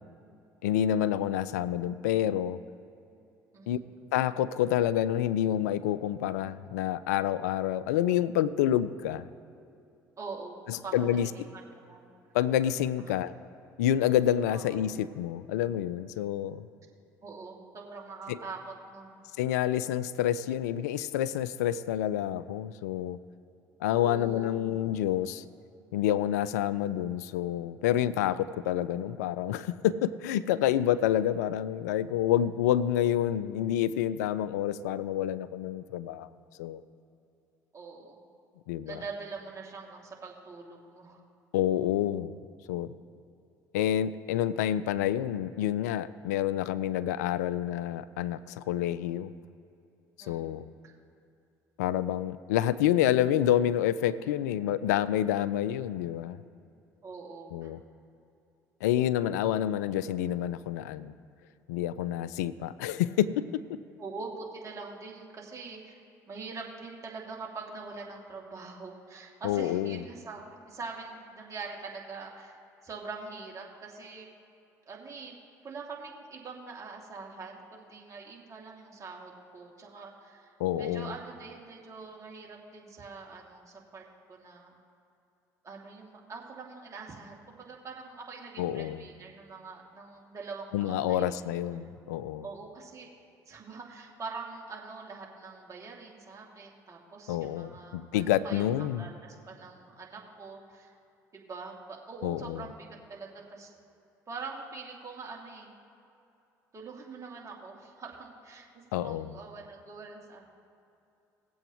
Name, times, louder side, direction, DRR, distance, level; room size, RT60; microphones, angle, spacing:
voice 1, 0.6-2.6 3.7-3.8 4.1-9.3 10.7-11.3 12.3-13.3 13.8-16.7 18.3-18.4 19.4-23.2 23.8-25.5 25.9-36.3 36.6-36.8 38.7-39.0 41.5-42.4 42.7-42.9 43.7-49.3 50.3-50.7 51.8-56.4 57.5-57.8 58.8-61.1 61.7-63.8 69.4-70.0 80.6-81.1 88.6-89.0 90.7-92.4 97.3-99.1 102.2-102.7 108.9-109.4, left 11 dB, 85° left, 16 dB, 0.4 m, -28 dB
voice 2, 3.5-3.9 10.2-10.6 10.8-12.1 13.0-13.1 14.5-14.7 17.2-19.1 23.9-24.5 37.7-38.2 38.8-41.2 50.2-50.6 50.8-50.9 57.0-57.7 64.0-66.0 66.3-70.4 70.7-74.3 74.9-75.4 75.6-80.5 80.8-84.8 85.6-91.4 92.4-93.1 93.5-101.0 101.3-103.7 104.3-105.7 106.7-110.5, right 4 dB, 35° right, -2 dB, 2.4 m, -44 dB
19.0 x 7.8 x 3.0 m, 2.7 s
hypercardioid pair, 60°, 9 cm